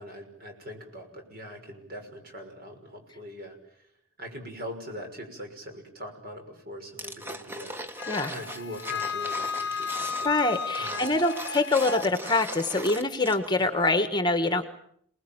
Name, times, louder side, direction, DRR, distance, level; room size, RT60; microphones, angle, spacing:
voice 1, 0.0-3.9 4.2-11.1, equal, 45° right, 4 dB, 6.1 m, -42 dB
sound 1, 7.0-13.6 13.9-14.0, equal, 10° right, 1.4 m, -39 dB
Wind instrument woodwind instrument, 8.0-12.1, left 5 dB, 55° left, 1.0 m, -33 dB
voice 2, 10.2-14.7, left 2 dB, 20° left, 9 dB, 1.4 m, -25 dB
28.0 x 20.5 x 8.9 m, 0.68 s
head